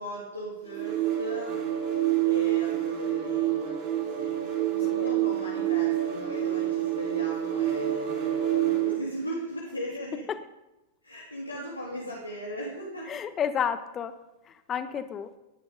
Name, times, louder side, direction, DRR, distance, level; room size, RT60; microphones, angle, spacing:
voice 1, 0.0-1.6 2.2-3.8 4.1-4.4 4.7-10.2 11.0-13.1, equal, 85° left, -5 dB, 3.1 m, -38 dB
sound 1, 0.7-9.1, right 12 dB, 40° right, 5.4 m, -27 dB
voice 2, 13.1-14.1 14.5-15.3, left 8 dB, 25° left, 11 dB, 1.2 m, -31 dB
17.5 x 10.5 x 5.3 m, 0.98 s
figure-of-eight pair, 90°, 0 cm